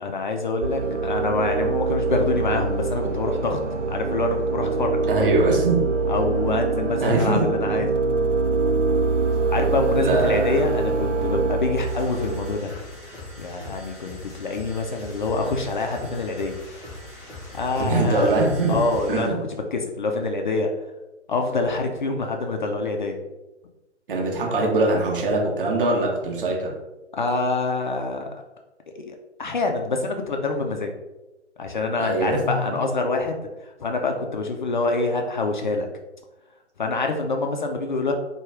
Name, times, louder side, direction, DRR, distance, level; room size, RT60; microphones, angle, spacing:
voice 1, 0.0-3.6 3.9-5.0 6.1-8.0 9.5-12.7 13.4-16.6 17.5-18.3 18.7-20.7 21.3-23.2 27.1-28.2 29.0-30.9 31.6-33.4 33.8-35.9 36.8-38.1, left 3 dB, 45° left, 3 dB, 0.4 m, -26 dB
sound 1, 0.6-12.6, right 4 dB, 85° right, 0.6 m, -24 dB
voice 2, 5.1-5.8 7.0-7.5 7.7-7.8 10.0-10.6 17.8-18.8 19.1-19.4 24.1-26.7 32.0-32.6, right 2 dB, 45° right, -2 dB, 1.2 m, -22 dB
sound 2, 11.8-19.3, left 1 dB, 5° left, 0.7 m, -40 dB
4.5 x 2.3 x 3.4 m, 1.0 s
figure-of-eight pair, 135°, 36 cm